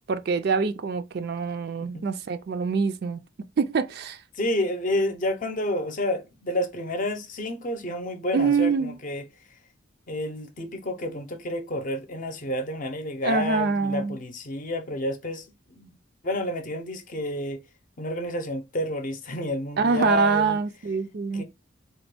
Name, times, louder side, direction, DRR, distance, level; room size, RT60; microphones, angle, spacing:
voice 1, 0.1-3.2 3.6-4.2 8.3-9.0 13.2-14.2 19.8-21.4, right 5 dB, 55° right, 0.4 m, -25 dB
voice 2, 4.3-9.3 10.1-16.0 16.2-17.6 18.0-20.6 21.3-21.4, left 1 dB, 40° left, 0.6 m, -30 dB
4.0 x 2.2 x 3.3 m
head